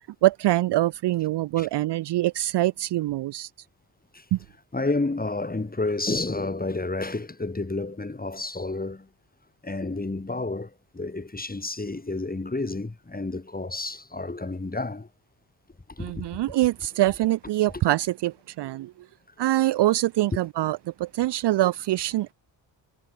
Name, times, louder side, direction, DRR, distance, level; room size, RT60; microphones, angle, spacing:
voice 1, 0.2-3.5 4.3-4.4 16.0-18.9 19.4-22.3, right 15 dB, 60° right, 0.5 m, -24 dB
voice 2, 4.7-9.1 9.6-15.1 15.9-16.3, left 2 dB, 20° left, 5.6 m, -30 dB
cardioid pair, 85°, 47 cm